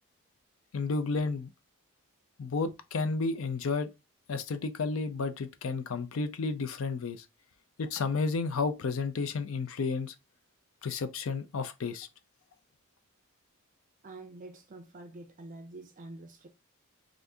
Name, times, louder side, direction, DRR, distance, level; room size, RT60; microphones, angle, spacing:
voice 1, 0.7-1.5 2.4-3.9 4.3-7.2 7.8-10.1 10.8-12.1, left 4 dB, 75° left, 0.5 m, -32 dB
voice 2, 14.0-16.5, right 2 dB, 40° right, 0.4 m, -47 dB
2.7 x 2.5 x 3.5 m
head